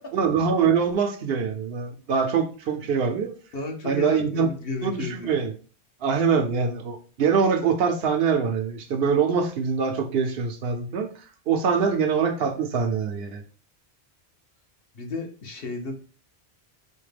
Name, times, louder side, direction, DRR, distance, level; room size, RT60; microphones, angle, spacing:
voice 1, 0.1-3.3 3.8-4.5 4.8-5.5 6.0-11.1 11.5-13.4, right 6 dB, 70° right, 0.8 m, -24 dB
voice 2, 3.5-5.3 14.9-16.0, left 3 dB, 65° left, 1.0 m, -33 dB
4.3 x 2.1 x 3.2 m
omnidirectional pair, 1.1 m